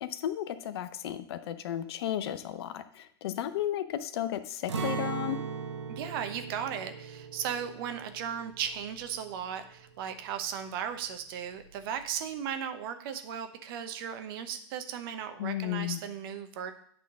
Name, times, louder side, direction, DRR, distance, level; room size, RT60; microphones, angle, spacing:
voice 1, 0.0-5.4 15.4-16.0, left 11 dB, 65° left, 12 dB, 0.7 m, -34 dB
Acoustic guitar, 4.7-10.6 10.9-11.1 11.5-12.0, right 5 dB, 90° right, 1.0 m, -39 dB
voice 2, 5.9-16.7, right 8 dB, 55° right, 8 dB, 0.9 m, -36 dB
8.8 x 3.7 x 6.0 m, 0.62 s
hypercardioid pair, 115°, 14 cm